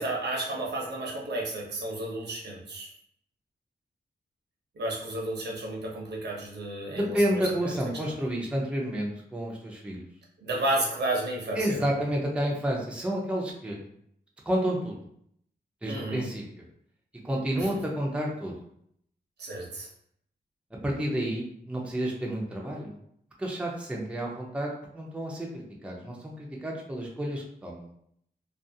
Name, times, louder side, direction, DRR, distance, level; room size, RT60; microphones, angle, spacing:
voice 1, 0.0-2.9 4.8-7.7 10.4-11.9 15.9-16.2 17.5-17.7 19.4-19.9, right 1 dB, 70° right, -2 dB, 0.7 m, -32 dB
voice 2, 6.9-10.0 11.5-13.8 14.5-15.0 15.8-16.4 17.2-18.5 20.8-23.0 23.4-27.9, right 1 dB, 5° right, -2 dB, 0.5 m, -30 dB
2.4 x 2.3 x 2.6 m, 0.69 s
wide cardioid pair, 115°, 18 cm